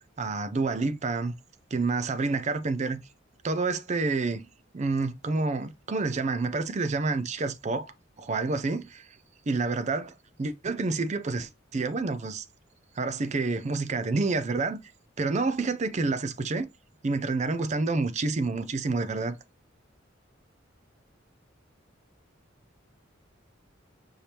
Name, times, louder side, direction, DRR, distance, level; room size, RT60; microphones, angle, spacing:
voice 1, 0.2-1.3 1.7-3.0 3.4-4.5 4.7-7.9 8.2-9.1 9.5-12.5 13.0-14.8 15.2-16.7 17.0-19.4, right 3 dB, 35° right, 0.5 m, -28 dB
5.6 x 3.3 x 2.8 m
head